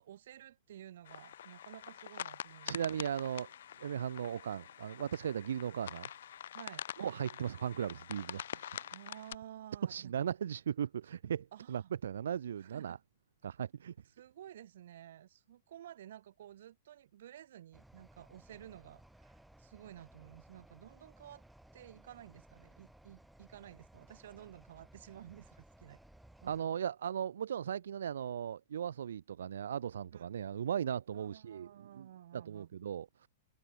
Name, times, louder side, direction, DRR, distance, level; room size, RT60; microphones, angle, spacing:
voice 1, 0.0-2.8 6.5-6.9 8.9-10.1 11.5-11.9 12.6-13.0 14.1-21.4 21.7-26.0 26.4-26.9 30.1-30.3 31.1-32.7, right 11 dB, 65° right, 2.0 m, -53 dB
sound 1, 1.1-9.4, left 10 dB, 75° left, 1.3 m, -46 dB
voice 2, 2.6-3.5 3.8-6.1 7.0-8.9 9.8-13.0 13.4-13.9 26.5-32.1 32.3-33.3, right 9 dB, 85° right, 0.3 m, -37 dB
sound 2, 17.7-26.6, right 1 dB, ahead, 4.1 m, -60 dB
hypercardioid pair, 155°, 0 cm